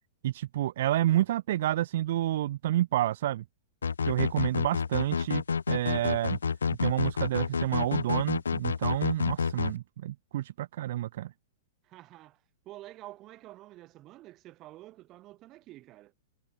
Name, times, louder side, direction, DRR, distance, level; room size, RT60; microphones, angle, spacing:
voice 1, 0.2-3.4 4.1-5.4 5.7-6.4 6.8-11.3, right 13 dB, 60° right, 0.6 m, -29 dB
sound 1, 3.8-9.7, left 6 dB, 85° left, 0.7 m, -29 dB
voice 2, 11.8-16.1, right 16 dB, 35° right, 4.5 m, -49 dB
hypercardioid pair, 110°, 0 cm